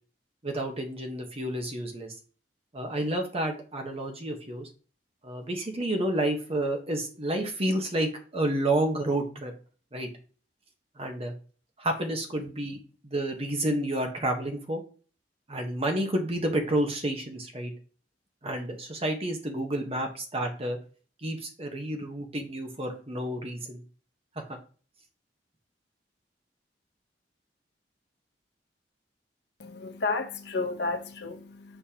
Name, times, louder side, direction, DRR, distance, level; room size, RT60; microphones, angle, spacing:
voice 1, 0.4-2.1 2.7-4.7 5.2-9.5 9.9-10.1 11.0-11.3 11.8-14.8 15.5-17.7 18.4-20.8 21.2-23.8 24.5-24.6, right 1 dB, 35° right, 1.2 m, -30 dB
voice 2, 29.6-31.8, left 3 dB, 70° left, 1.0 m, -32 dB
6.9 x 5.4 x 2.9 m
head